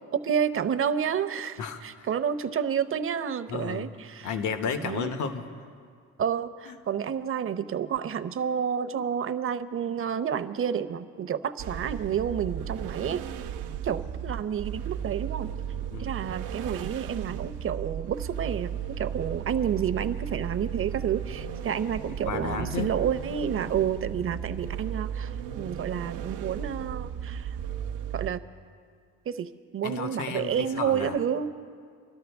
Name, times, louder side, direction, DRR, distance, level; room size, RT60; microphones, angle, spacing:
voice 1, 0.1-4.4 4.8-5.1 6.2-13.2 13.8-15.5 16.0-27.6 28.1-28.4 29.3-31.5, right 8 dB, 45° right, 12 dB, 0.7 m, -30 dB
voice 2, 1.6-2.1 3.5-3.9 4.2-5.5 6.7-6.8 13.0-13.2 15.9-16.1 21.4-21.5 22.2-22.9 29.8-31.1, left 6 dB, 75° left, 8 dB, 1.0 m, -33 dB
sound 1, 11.6-28.3, right 9 dB, 85° right, 0.7 m, -35 dB
24.5 x 12.5 x 3.5 m, 2.1 s
cardioid pair, 90°, 30 cm